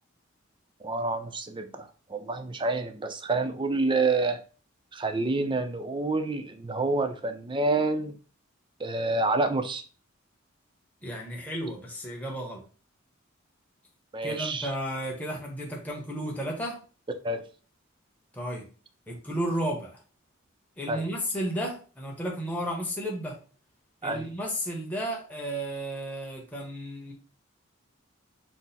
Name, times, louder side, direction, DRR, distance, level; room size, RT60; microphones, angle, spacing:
voice 1, 0.8-4.4 4.9-8.1 8.8-9.8 14.1-14.7 17.2-17.4 20.9-21.0 24.0-24.3, right 3 dB, 25° right, 7 dB, 0.5 m, -28 dB
voice 2, 11.0-12.6 14.2-16.8 18.3-18.7 19.1-19.9 20.8-23.4 24.0-27.1, right 1 dB, 10° left, -2 dB, 1.0 m, -33 dB
6.1 x 2.0 x 4.1 m, 0.38 s
head